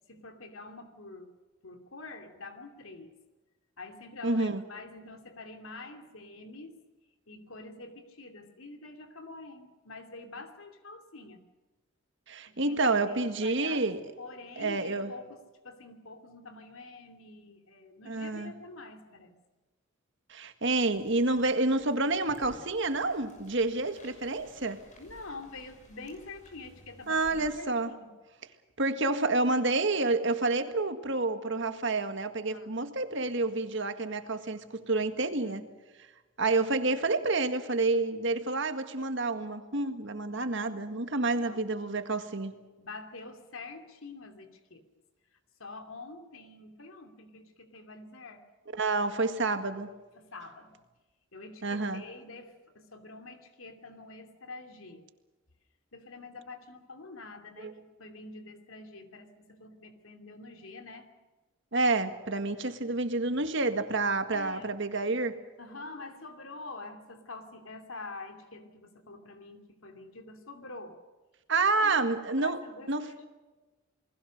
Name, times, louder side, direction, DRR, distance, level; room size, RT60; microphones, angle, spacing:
voice 1, 0.1-1.3 1.6-3.1 3.8-6.8 7.3-11.4 12.5-13.9 14.2-19.4 25.0-28.1 32.5-32.7 35.4-35.6 41.1-41.7 42.8-44.8 45.6-48.4 49.4-49.6 50.2-50.8 51.3-55.0 55.9-61.1 64.3-64.8 65.6-71.0 71.8-73.3, left 3 dB, 70° left, 6 dB, 2.8 m, -46 dB
voice 2, 4.2-4.6 12.3-14.0 14.6-15.1 18.1-18.5 20.3-24.8 27.1-27.9 28.8-35.6 36.4-42.5 48.7-49.9 51.6-52.0 57.6-57.7 61.7-65.4 71.5-72.6 72.9-73.1, right 3 dB, 60° right, 8 dB, 1.8 m, -29 dB
sound 1, 20.8-27.5, left 1 dB, 35° left, 6.3 m, -56 dB
29.0 x 20.0 x 6.6 m, 1.2 s
head